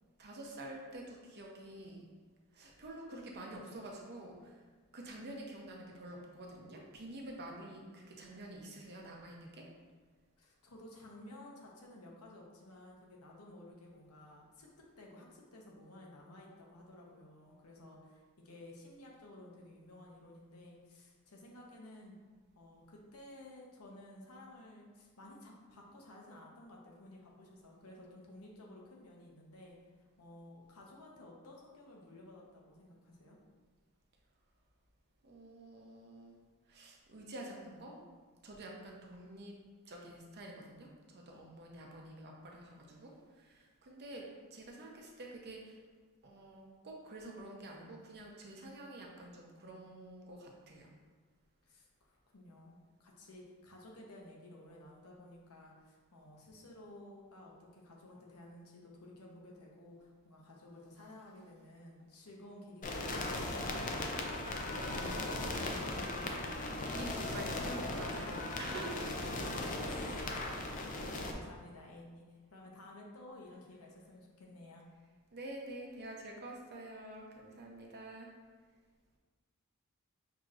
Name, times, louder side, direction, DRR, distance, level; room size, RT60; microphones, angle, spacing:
voice 1, 0.2-2.1 2.5-4.6 4.9-9.7 35.2-36.4 36.7-38.0 38.4-39.5 39.9-45.8 46.2-50.9 64.6-69.6 75.3-78.3, right 1 dB, 50° right, -1 dB, 0.7 m, -48 dB
voice 2, 10.4-14.7 15.0-22.2 22.5-33.4 51.6-63.9 69.8-70.3 71.3-74.8, left 1 dB, 80° left, -1 dB, 0.9 m, -54 dB
sound 1, 62.8-71.3, left 2 dB, 35° left, 0.4 m, -38 dB
6.1 x 2.8 x 2.5 m, 1.4 s
head